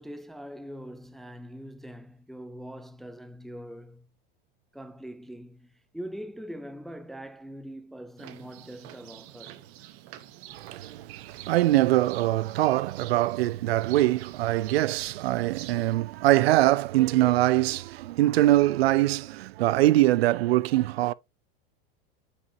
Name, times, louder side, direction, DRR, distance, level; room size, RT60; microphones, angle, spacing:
voice 1, 0.0-4.1 4.7-9.6, equal, ahead, 0.4 m, -42 dB
sound 1, 8.2-16.0, right 13 dB, 50° right, 1.0 m, -47 dB
voice 2, 10.5-21.1, right 16 dB, 85° right, 0.5 m, -23 dB
8.4 x 4.9 x 2.7 m
supercardioid pair, 120°, 30 cm